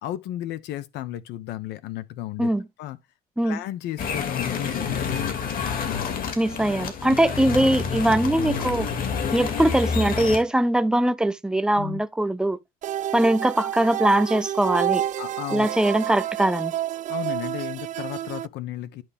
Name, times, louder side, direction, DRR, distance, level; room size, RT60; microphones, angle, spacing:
voice 1, 0.0-2.5 2.8-3.0 3.4-6.3 7.1-7.2 11.7-12.0 15.2-15.7 17.1-19.0, left 13 dB, 85° left, 1.0 m, -34 dB
sound 1, 4.0-10.4, left 6 dB, 55° left, 2.4 m, -28 dB
voice 2, 6.4-8.9 9.3-12.6 13.1-15.0 15.5-16.7, right 1 dB, 5° right, 0.7 m, -21 dB
sound 2, 12.8-18.5, right 12 dB, 50° right, 0.4 m, -29 dB
10.5 x 5.7 x 3.6 m
cardioid pair, 110°, 17 cm